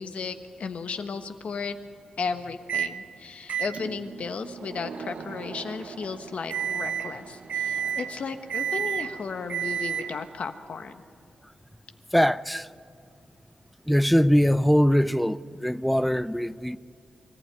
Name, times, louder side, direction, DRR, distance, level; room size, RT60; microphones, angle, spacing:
voice 1, 0.0-1.8 2.2-11.0, left 5 dB, 65° left, 1.3 m, -34 dB
Microwave oven, 2.7-3.0 3.5-10.3, right 8 dB, 70° right, 0.9 m, -32 dB
voice 2, 12.1-12.7 13.9-16.8, equal, ahead, 0.5 m, -22 dB
24.0 x 15.0 x 9.2 m
cardioid pair, 80°, 2 cm